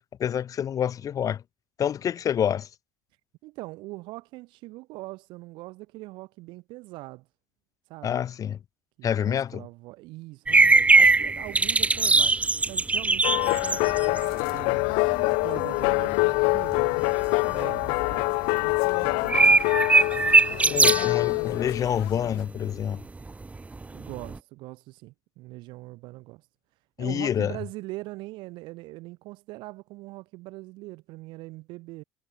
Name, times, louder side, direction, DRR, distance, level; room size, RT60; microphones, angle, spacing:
voice 1, 0.2-1.4 1.8-2.7 8.0-8.6 9.0-9.6 20.7-23.0 27.0-27.5, left 9 dB, 40° left, 1.4 m, -27 dB
voice 2, 3.4-7.3 7.9-8.2 9.0-12.4 12.6-14.8 15.3-17.0 17.5-18.3 19.0-20.6 23.9-26.5 27.0-32.0, right 21 dB, 70° right, 3.2 m, -42 dB
sound 1, 10.5-14.6 15.1-15.2 15.6-16.0 16.6-17.0 17.5-17.6 17.8-17.9 19.0-21.2 23.0-24.4, right 3 dB, 15° right, 0.9 m, -20 dB
sound 2, 13.2-22.4, left 33 dB, 75° left, 1.2 m, -25 dB
supercardioid pair, 85°, 8 cm